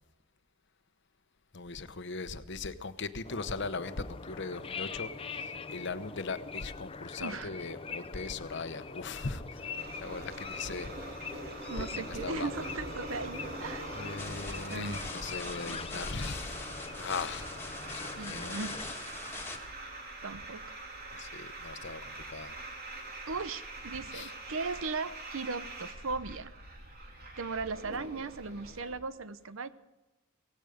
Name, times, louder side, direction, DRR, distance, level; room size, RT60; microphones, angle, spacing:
voice 1, 1.5-10.9 11.8-12.7 13.9-16.6 17.0-17.5 17.9-18.6 21.1-22.6 24.1-24.3, left 4 dB, 60° left, 1.0 m, -39 dB
sound 1, 3.2-18.9, left 5 dB, 25° left, 0.7 m, -43 dB
voice 2, 7.2-7.5 11.7-13.8 14.7-15.0 15.6-15.8 18.2-18.8 20.2-20.6 23.3-26.5 27.4-29.7, right 4 dB, 75° right, 0.8 m, -37 dB
sound 2, 9.8-28.9, right 2 dB, 45° right, 2.9 m, -44 dB
sound 3, 14.2-19.6, left 3 dB, 10° left, 2.0 m, -43 dB
17.5 x 16.0 x 5.1 m
head